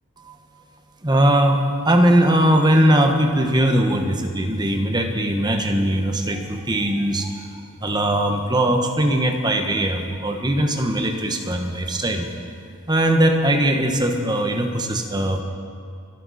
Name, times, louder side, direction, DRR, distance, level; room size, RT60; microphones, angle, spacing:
voice 1, 1.0-7.4 7.8-12.3 12.9-15.4, right 1 dB, 20° right, 4 dB, 1.2 m, -20 dB
26.0 x 11.5 x 4.2 m, 2.3 s
head